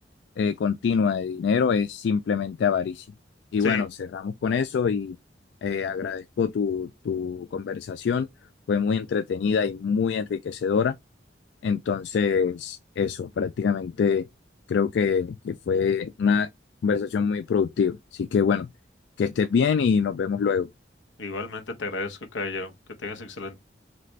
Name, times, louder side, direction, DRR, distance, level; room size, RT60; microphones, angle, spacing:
voice 1, 0.4-3.1 3.5-5.2 5.6-8.3 8.7-10.9 11.6-14.2 14.7-16.5 16.8-18.7 19.2-20.7, left 6 dB, 70° left, 0.3 m, -25 dB
voice 2, 21.2-22.7 23.0-23.6, left 3 dB, 85° left, 0.9 m, -32 dB
3.9 x 3.3 x 3.1 m
head